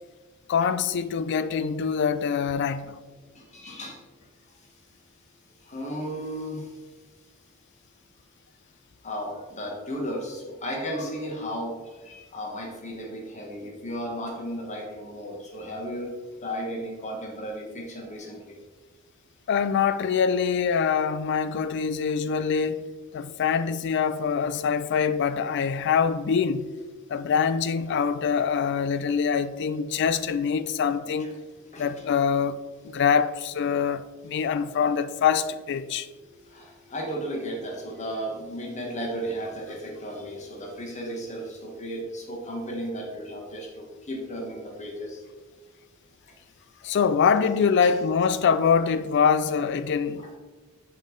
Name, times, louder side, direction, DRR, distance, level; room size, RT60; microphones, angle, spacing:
voice 1, 0.5-3.0 19.5-22.8 23.1-26.7 27.1-31.3 31.8-36.1 46.8-50.2, left 6 dB, 55° left, 0.3 m, -24 dB
voice 2, 3.3-4.0 5.6-6.8 9.0-18.6 23.2-23.3 31.2-31.3 31.7-31.9 36.5-45.2 46.8-47.0 47.8-47.9 50.2-50.4, equal, 35° left, 1.3 m, -35 dB
5.5 x 5.2 x 3.8 m
head